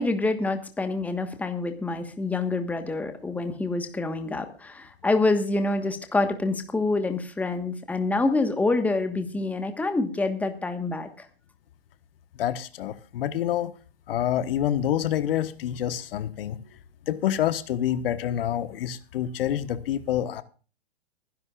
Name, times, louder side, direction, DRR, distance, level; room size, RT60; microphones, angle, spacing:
voice 1, 0.0-11.3, left 2 dB, 5° left, 1.3 m, -26 dB
voice 2, 12.4-13.7 14.1-16.6 17.1-20.4, left 11 dB, 55° left, 1.2 m, -27 dB
23.5 x 11.0 x 2.4 m
hypercardioid pair, 130°, 34 cm